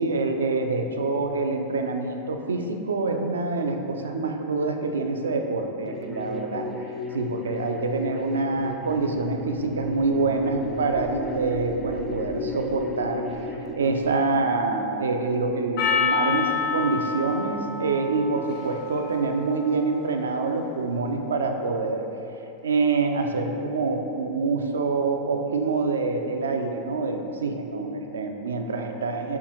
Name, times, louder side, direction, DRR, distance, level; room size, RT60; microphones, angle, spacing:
voice 1, 0.0-6.6 7.1-13.2 13.7-22.0 22.6-29.4, right 3 dB, 70° right, 4 dB, 0.3 m, -26 dB
sound 1, 5.9-13.8, left 3 dB, ahead, 0.4 m, -36 dB
sound 2, 8.7-14.6, right 1 dB, 85° left, 0.8 m, -36 dB
Percussion, 15.8-20.4, left 5 dB, 50° left, 0.7 m, -28 dB
4.4 x 3.5 x 2.9 m, 2.9 s
figure-of-eight pair, 90°, 0 cm